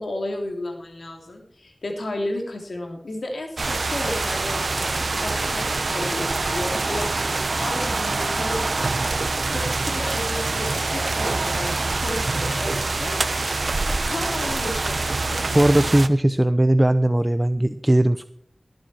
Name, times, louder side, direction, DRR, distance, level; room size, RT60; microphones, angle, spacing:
voice 1, 0.0-8.8 9.3-13.3 14.1-15.5, left 1 dB, 85° left, 2 dB, 3.2 m, -33 dB
sound 1, 3.6-16.1, right 3 dB, 75° right, 0.9 m, -25 dB
voice 2, 15.5-18.2, right 1 dB, 20° right, 10 dB, 0.6 m, -18 dB
18.0 x 7.8 x 4.4 m, 0.65 s
wide cardioid pair, 45°, 0 cm